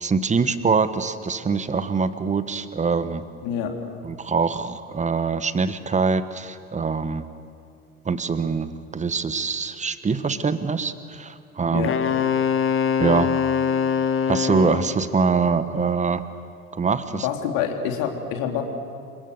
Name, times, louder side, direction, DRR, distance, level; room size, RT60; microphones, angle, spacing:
voice 1, 0.0-3.2 4.0-7.2 8.0-11.9 13.0-13.3 14.3-16.2 16.7-17.3, right 5 dB, 15° right, 13 dB, 1.4 m, -24 dB
voice 2, 3.4-3.9 11.7-12.0 17.2-18.6, left 8 dB, 50° left, 4 dB, 3.6 m, -26 dB
Wind instrument woodwind instrument, 11.8-15.0, left 7 dB, 25° left, 1.7 m, -23 dB
30.0 x 26.0 x 6.8 m, 2.5 s
figure-of-eight pair, 75°, 45 cm